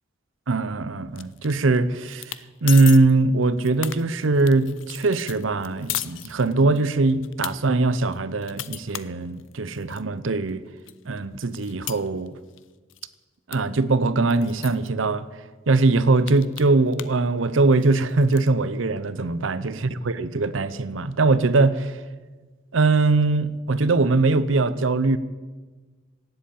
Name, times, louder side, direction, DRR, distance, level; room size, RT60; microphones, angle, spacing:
voice 1, 0.5-2.3 2.6-10.6 11.1-12.3 13.5-15.3 15.7-22.0 22.7-25.2, right 3 dB, 85° right, 0.7 m, -21 dB
sound 1, 1.2-1.8 2.1-2.4 2.7-3.0 3.4-6.8 7.2-7.5 8.0-10.0 10.5-10.6 10.9-12.6 12.9-13.1 13.5-13.6 13.8-13.9 14.3-14.9 15.5-15.6 15.8-17.2 17.5-18.5, left 14 dB, 75° left, 0.6 m, -35 dB
17.5 x 8.0 x 8.5 m
head